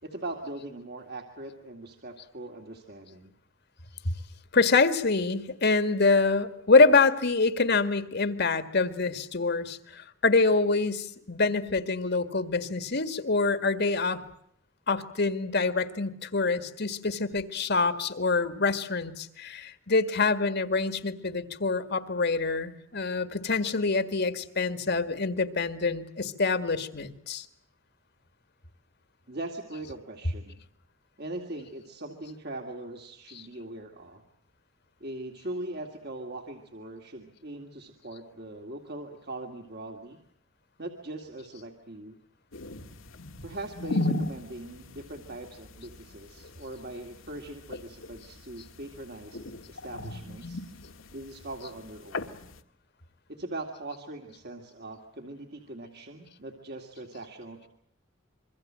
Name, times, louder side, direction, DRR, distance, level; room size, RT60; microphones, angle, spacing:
voice 1, 0.0-3.3 29.3-30.6 31.2-34.2 35.0-40.2 40.8-42.2 43.4-50.6 51.1-52.4 53.3-57.7, right 2 dB, 55° right, 3 dB, 2.4 m, -41 dB
voice 2, 4.5-14.2 14.9-27.5, left 3 dB, 55° left, 11 dB, 1.9 m, -25 dB
sound 1, 42.5-52.6, left 2 dB, 80° left, 1.8 m, -37 dB
26.5 x 23.5 x 7.6 m, 0.71 s
head